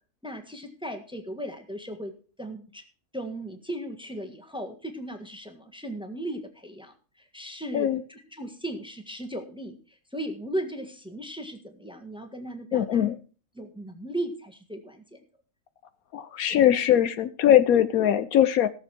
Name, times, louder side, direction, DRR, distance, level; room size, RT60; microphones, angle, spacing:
voice 1, 0.2-2.1 2.4-2.8 3.1-13.0 13.5-15.2 16.4-16.8, right 1 dB, 5° right, 5 dB, 1.4 m, -37 dB
voice 2, 12.7-13.1 16.1-18.7, left 10 dB, 75° left, 12 dB, 1.1 m, -21 dB
17.5 x 6.9 x 4.4 m, 0.38 s
omnidirectional pair, 1.6 m